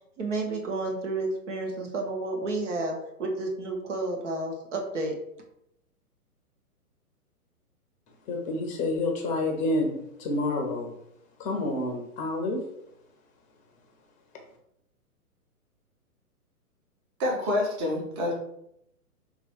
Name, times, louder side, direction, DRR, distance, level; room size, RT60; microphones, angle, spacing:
voice 1, 0.2-5.2, right 2 dB, 50° right, 1 dB, 1.5 m, -31 dB
voice 2, 8.3-9.9 10.2-10.9 11.4-12.6, left 2 dB, 15° left, 2 dB, 0.9 m, -28 dB
voice 3, 17.2-18.3, left 1 dB, 30° right, -1 dB, 1.5 m, -27 dB
6.3 x 3.5 x 4.6 m, 0.78 s
figure-of-eight pair, 120°, 45 cm